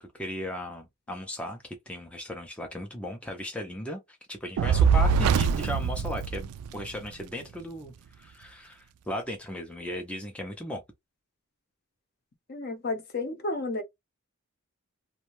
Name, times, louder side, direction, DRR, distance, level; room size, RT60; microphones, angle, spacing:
voice 1, 0.0-10.8, left 1 dB, 5° left, 0.4 m, -37 dB
Fire, 4.6-7.0, right 6 dB, 90° right, 0.3 m, -23 dB
voice 2, 12.5-13.8, left 2 dB, 45° left, 0.6 m, -32 dB
2.5 x 2.2 x 3.0 m
head